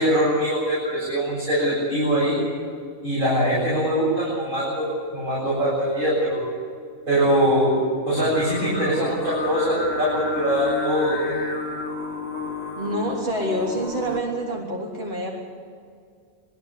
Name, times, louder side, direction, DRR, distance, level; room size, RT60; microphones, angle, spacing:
voice 1, 0.0-2.4 3.0-4.9 5.1-6.4 7.1-7.8 8.0-11.3, equal, 85° right, -8 dB, 7.9 m, -22 dB
Singing, 8.1-14.2, left 3 dB, 30° right, 3.4 m, -31 dB
voice 2, 12.8-15.3, right 1 dB, 45° right, -3 dB, 3.7 m, -27 dB
21.0 x 15.0 x 9.9 m, 2.2 s
omnidirectional pair, 1.4 m